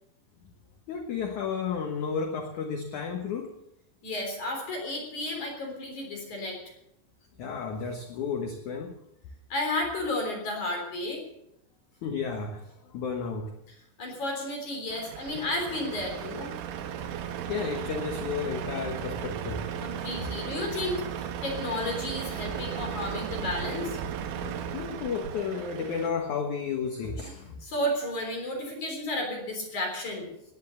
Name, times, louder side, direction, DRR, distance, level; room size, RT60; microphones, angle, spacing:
voice 1, 0.9-3.5 7.4-9.0 12.0-13.5 17.5-19.7 24.4-27.6, left 6 dB, 65° left, 4 dB, 1.9 m, -32 dB
voice 2, 4.0-6.6 9.5-11.2 14.0-16.5 19.8-24.0 27.2-30.3, left 1 dB, 45° left, 1 dB, 4.7 m, -32 dB
Truck, 14.9-26.1, right 8 dB, 80° right, 3.6 m, -36 dB
18.5 x 10.5 x 7.1 m, 0.82 s
omnidirectional pair, 5.3 m